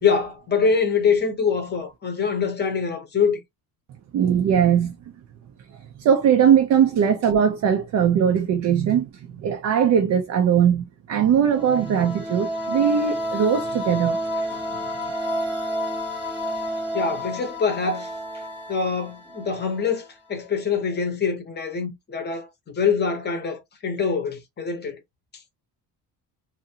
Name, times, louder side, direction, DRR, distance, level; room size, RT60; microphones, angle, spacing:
voice 1, 0.0-3.4 16.9-18.1 18.7-25.0, left 5 dB, 25° left, 0.8 m, -24 dB
voice 2, 4.1-5.0 6.0-14.2 14.5-14.6, right 8 dB, 45° right, 0.4 m, -20 dB
sound 1, 11.4-20.0, equal, 10° right, 0.9 m, -30 dB
2.7 x 2.5 x 2.7 m
cardioid pair, 180°, 40 cm